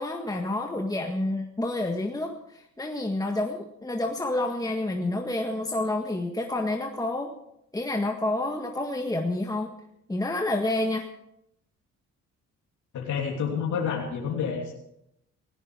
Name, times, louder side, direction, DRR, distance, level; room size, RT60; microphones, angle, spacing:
voice 1, 0.0-7.3 7.7-9.7 10.1-11.1, left 2 dB, 10° left, 2 dB, 1.7 m, -29 dB
voice 2, 12.9-14.7, left 6 dB, 75° left, -2 dB, 3.1 m, -29 dB
18.0 x 16.0 x 4.8 m, 0.79 s
cardioid pair, 90°, 30 cm